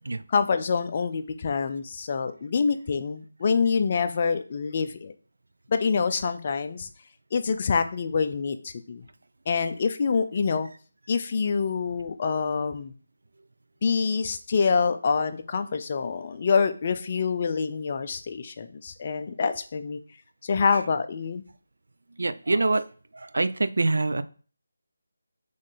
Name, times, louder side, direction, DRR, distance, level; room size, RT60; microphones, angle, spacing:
voice 1, 0.3-5.1 5.7-6.9 7.3-9.0 9.5-10.7 11.1-12.9 13.8-20.0 20.4-21.4, left 5 dB, 35° left, 9 dB, 0.4 m, -26 dB
voice 2, 22.2-22.8 23.1-24.2, right 2 dB, 75° right, 12 dB, 0.4 m, -25 dB
3.7 x 3.1 x 4.1 m, 0.40 s
figure-of-eight pair, 165°, 0 cm